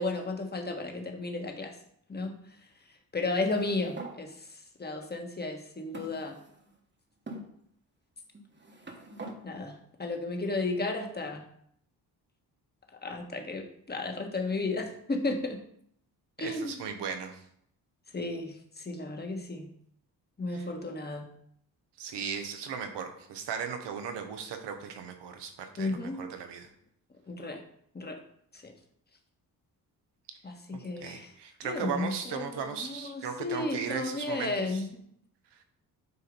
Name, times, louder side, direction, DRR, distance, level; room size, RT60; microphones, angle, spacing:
voice 1, 0.0-1.7 2.1-2.4 3.1-4.3 4.8-6.4 9.4-11.4 13.0-15.6 16.4-16.7 18.1-19.7 20.4-21.3 25.8-26.2 27.3-27.6 27.9-28.2 28.5-28.7 30.4-31.3 31.6-34.9, left 2 dB, 25° left, 3 dB, 1.4 m, -33 dB
sound 1, 3.3-4.2 5.0-5.1 5.9-6.8 7.3-7.5 8.3-9.4, right 2 dB, 25° right, 1.3 m, -44 dB
voice 2, 16.4-17.4 20.5-20.7 22.0-25.9 26.2-26.7 30.7-34.9, right 6 dB, 80° right, 6 dB, 1.1 m, -37 dB
8.2 x 2.8 x 5.3 m, 0.68 s
supercardioid pair, 60°, 41 cm